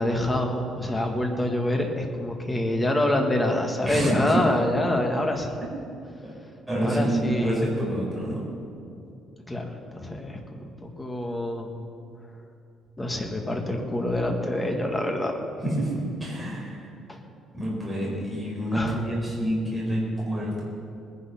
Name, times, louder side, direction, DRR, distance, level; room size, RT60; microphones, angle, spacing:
voice 1, 0.0-5.5 6.8-7.7 9.5-11.7 12.3-12.4 13.0-15.3 17.1-17.2 18.7-19.0, left 1 dB, 10° left, 2 dB, 1.5 m, -26 dB
voice 2, 3.8-4.4 6.2-6.3 6.7-8.5 15.6-16.9 17.5-20.6, right 1 dB, 5° right, -5 dB, 4.3 m, -27 dB
19.5 x 10.0 x 5.7 m, 2.6 s
cardioid pair, 165°, 0 cm